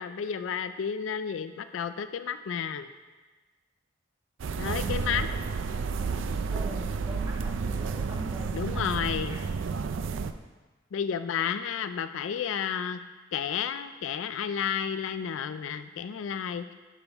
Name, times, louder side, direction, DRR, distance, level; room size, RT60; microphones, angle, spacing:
voice 1, 0.0-2.9 4.6-5.3 8.5-9.4 10.9-13.0 13.3-16.7, left 7 dB, 85° left, 11 dB, 0.4 m, -31 dB
sound 1, 4.4-10.3, right 5 dB, 75° right, 0.4 m, -31 dB
voice 2, 6.5-9.5, equal, 15° right, 2 dB, 0.6 m, -43 dB
8.9 x 6.1 x 3.5 m, 1.3 s
head